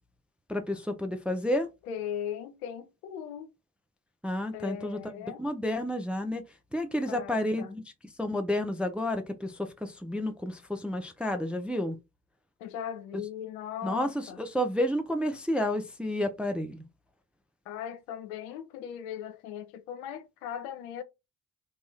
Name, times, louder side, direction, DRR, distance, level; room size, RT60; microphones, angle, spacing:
voice 1, 0.5-1.7 4.2-5.0 5.4-6.4 6.7-7.8 8.2-12.0 13.8-16.8, left 1 dB, 5° right, 0.3 m, -30 dB
voice 2, 1.8-3.5 4.5-5.4 7.1-7.7 12.6-14.4 17.7-21.0, left 9 dB, 70° left, 0.6 m, -38 dB
2.6 x 2.3 x 3.2 m
figure-of-eight pair, 45°, 46 cm